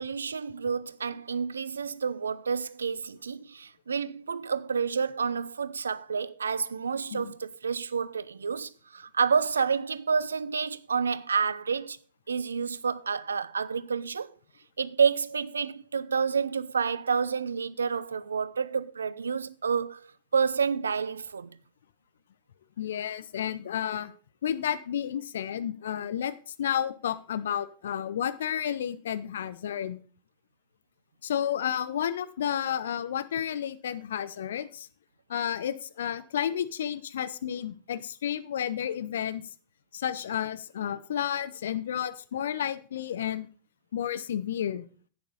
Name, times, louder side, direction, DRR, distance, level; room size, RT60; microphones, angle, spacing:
voice 1, 0.0-12.0 12.3-14.3 14.8-20.0 20.3-21.6, right 6 dB, 75° right, 0.5 m, -29 dB
voice 2, 22.8-24.1 24.4-30.0 31.2-34.9 35.3-39.4 39.9-43.5 43.9-44.8, left 9 dB, 65° left, 0.7 m, -31 dB
11.0 x 8.7 x 4.1 m
figure-of-eight pair, 90°, 0 cm